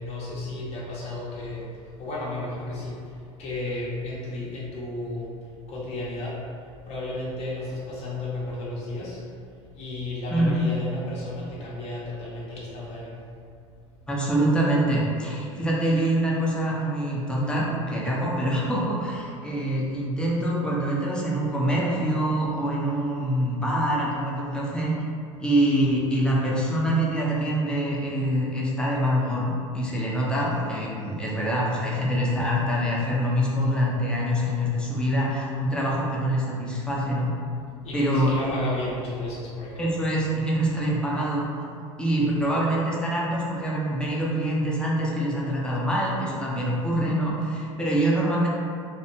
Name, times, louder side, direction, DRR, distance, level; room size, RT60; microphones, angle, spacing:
voice 1, 0.0-5.3 5.7-6.4 6.8-9.3 9.7-13.2 37.8-39.9, left 2 dB, 40° left, -6 dB, 0.7 m, -33 dB
voice 2, 14.1-24.9 25.4-37.3 37.9-38.5 39.8-41.5 42.0-48.5, right 1 dB, 5° left, -5 dB, 0.6 m, -25 dB
2.5 x 2.2 x 2.7 m, 2.4 s
hypercardioid pair, 80°, 16 cm